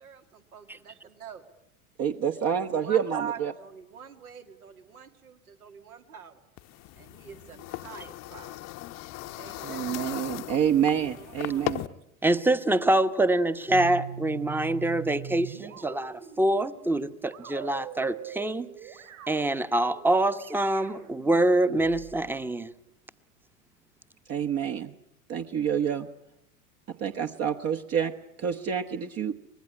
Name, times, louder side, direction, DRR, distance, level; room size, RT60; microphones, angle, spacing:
voice 1, 0.0-1.5 2.5-6.4 6.9-8.6 9.3-10.0 11.0-11.7, right 7 dB, 80° right, 6 dB, 2.5 m, -44 dB
voice 2, 2.0-3.5 9.6-11.8 24.3-24.9 25.3-26.1 26.9-28.1 28.4-29.3, right 8 dB, 35° right, 6 dB, 1.1 m, -27 dB
sound 1, 6.6-11.9, left 17 dB, 35° left, 0.9 m, -38 dB
voice 3, 12.2-18.7 19.3-22.7, right 1 dB, 5° right, 13 dB, 1.0 m, -25 dB
sound 2, 13.7-22.3, right 11 dB, 60° right, 6.1 m, -42 dB
25.0 x 20.5 x 9.8 m, 0.79 s
figure-of-eight pair, 85°, 44 cm